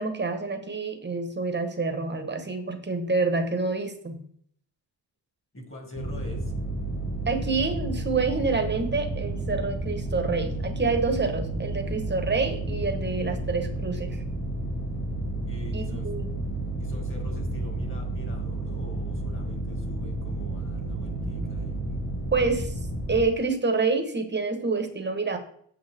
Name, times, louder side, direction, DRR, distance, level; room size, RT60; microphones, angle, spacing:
voice 1, 0.0-4.2 7.3-14.2 15.7-16.3 22.3-22.7 23.1-25.4, right 4 dB, 25° right, 6 dB, 1.2 m, -27 dB
voice 2, 5.5-6.5 15.4-16.2 16.8-21.9, equal, 25° left, 2 dB, 2.3 m, -43 dB
sound 1, 5.9-23.2, right 2 dB, 75° left, 4.0 m, -31 dB
8.4 x 7.4 x 3.5 m, 0.63 s
wide cardioid pair, 140°, 46 cm